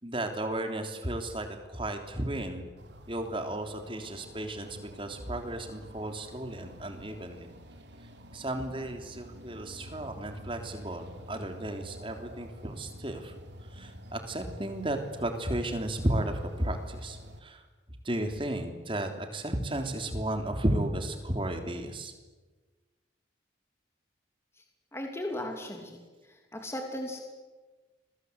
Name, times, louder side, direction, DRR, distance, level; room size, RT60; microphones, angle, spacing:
voice 1, 0.0-2.6 3.1-7.5 8.3-13.3 13.7-17.6 18.0-22.1, right 1 dB, 25° right, 5 dB, 3.3 m, -34 dB
sound 1, 2.8-17.4, equal, 65° right, 3.5 m, -48 dB
voice 2, 24.9-26.0 26.3-27.2, left 1 dB, 15° left, 3 dB, 3.0 m, -36 dB
29.5 x 23.0 x 8.2 m, 1.3 s
head